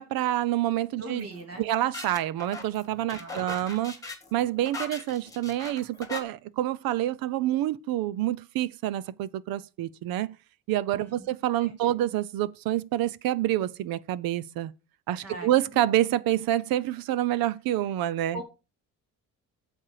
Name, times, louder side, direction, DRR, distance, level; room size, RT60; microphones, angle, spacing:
voice 1, 0.0-1.3 1.6-3.9 4.3-10.3 10.7-14.7 15.1-18.4, right 13 dB, 85° right, 0.7 m, -27 dB
voice 2, 1.0-1.6 3.1-3.6 10.9-11.3 11.6-11.9 15.2-15.5 15.7-15.9 18.3-18.4, right 1 dB, 45° right, 3.1 m, -41 dB
sound 1, 1.2-6.2, left 3 dB, 10° left, 1.8 m, -40 dB
8.7 x 7.4 x 4.9 m
cardioid pair, 135°, 34 cm